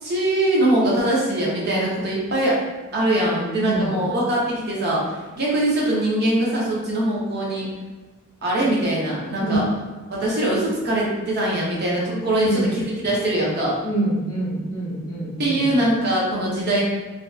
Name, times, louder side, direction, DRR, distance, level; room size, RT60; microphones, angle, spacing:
voice 1, 0.0-2.6 2.9-7.7 8.4-9.7 10.1-13.8 15.4-16.8, right 1 dB, 45° right, -5 dB, 0.6 m, -22 dB
voice 2, 3.6-4.0 9.4-9.6 12.4-12.7 13.8-15.6, right 1 dB, 15° left, -8 dB, 0.5 m, -26 dB
2.5 x 2.3 x 2.2 m, 1.3 s
head